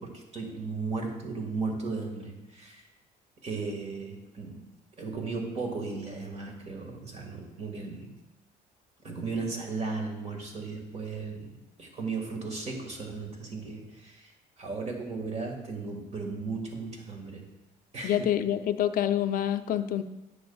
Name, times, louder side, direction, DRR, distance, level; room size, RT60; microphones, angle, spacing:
voice 1, 0.0-2.9 3.4-4.7 5.0-8.2 9.0-17.5 17.9-18.2, right 4 dB, 40° right, 2 dB, 1.7 m, -36 dB
voice 2, 18.0-20.0, left 11 dB, 60° left, 10 dB, 0.5 m, -27 dB
10.0 x 6.9 x 2.3 m, 1.0 s
cardioid pair, 110°, 17 cm